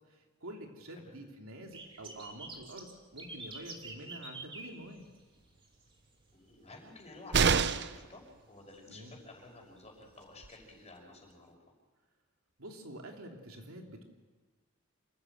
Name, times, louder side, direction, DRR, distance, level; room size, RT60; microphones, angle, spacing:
voice 1, 0.1-5.0 8.9-9.2 12.6-14.1, right 1 dB, 80° right, 2 dB, 3.1 m, -47 dB
sound 1, 1.7-5.9 6.2-6.5 7.0-7.1 8.3-8.5 8.8-8.9 10.1-10.2 10.8-10.9, right 3 dB, 25° right, 2.9 m, -46 dB
voice 2, 6.3-11.6, left 2 dB, 30° left, 1 dB, 5.8 m, -52 dB
sound 2, 7.3-8.1 10.0-10.1 10.4-10.5, right 6 dB, 55° right, 0.7 m, -26 dB
27.0 x 15.0 x 8.0 m, 1.3 s
head